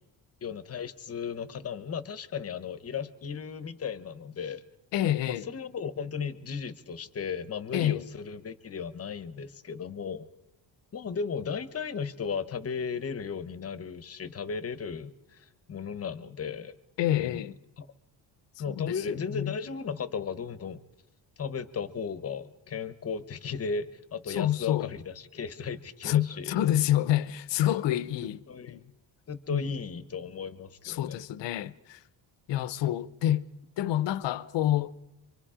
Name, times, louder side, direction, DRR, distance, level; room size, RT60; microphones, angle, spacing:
voice 1, 0.4-4.6 5.3-10.3 10.9-16.8 17.2-17.5 17.8-17.9 18.6-20.8 21.4-26.6 27.6-27.8 28.2-28.8 29.3-31.2, left 6 dB, 30° left, 0.9 m, -35 dB
voice 2, 4.9-5.5 7.7-8.1 17.0-17.6 18.7-19.0 19.3-19.6 24.3-24.9 26.0-28.4 28.7-28.8 29.5-29.6 30.8-32.0 32.5-33.5 33.8-35.0, left 12 dB, 65° left, 0.8 m, -27 dB
26.0 x 24.5 x 5.0 m
cardioid pair, 170°, 47 cm